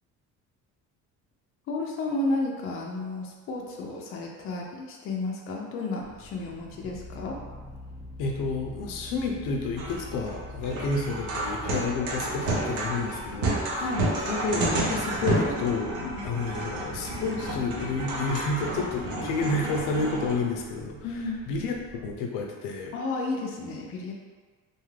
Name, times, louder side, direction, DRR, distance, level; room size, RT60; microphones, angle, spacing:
voice 1, 1.7-7.4 13.8-14.1 16.0-16.3 21.0-21.5 22.9-24.1, left 2 dB, 45° left, -1 dB, 0.4 m, -32 dB
sound 1, 6.0-22.2, left 1 dB, 15° right, 0.4 m, -45 dB
voice 2, 8.2-13.9 14.3-21.0 21.5-22.9, left 3 dB, 90° left, 1 dB, 0.6 m, -30 dB
sound 2, 9.8-20.3, right 1 dB, 70° right, 0.7 m, -31 dB
2.6 x 2.4 x 3.1 m, 1.4 s
cardioid pair, 160°, 31 cm